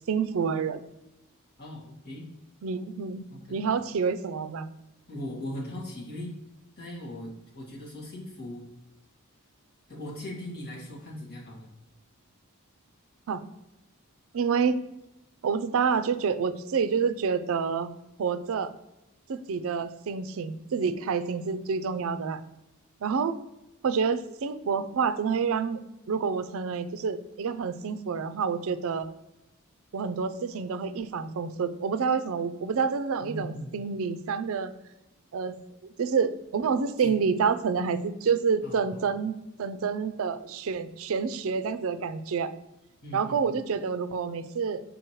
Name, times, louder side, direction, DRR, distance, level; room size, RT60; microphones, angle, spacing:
voice 1, 0.1-0.8 2.6-3.2 3.5-4.7 13.3-13.4 14.3-14.8 15.4-17.9 18.2-18.7 19.3-22.4 23.0-23.4 23.8-29.1 29.9-34.7 35.3-35.6 36.0-42.5 43.1-44.8, right 5 dB, 70° right, 12 dB, 0.4 m, -28 dB
voice 2, 1.6-2.3 3.3-3.5 5.1-6.3 6.8-8.7 9.9-11.7 33.2-33.8 37.0-37.1 38.6-39.0 43.0-43.4, left 1 dB, 50° left, -4 dB, 2.0 m, -39 dB
6.2 x 5.0 x 3.1 m, 0.95 s
head